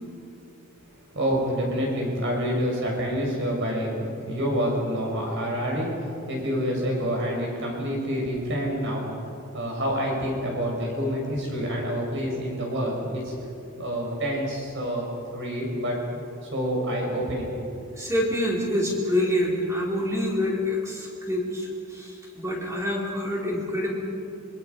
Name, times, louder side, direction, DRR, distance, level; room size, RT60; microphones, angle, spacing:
voice 1, 1.1-13.3 13.7-16.2 16.5-17.7, equal, 55° right, -1 dB, 6.3 m, -28 dB
voice 2, 18.0-23.9, left 1 dB, 15° right, -3 dB, 3.9 m, -26 dB
25.5 x 24.0 x 5.5 m, 2.7 s
head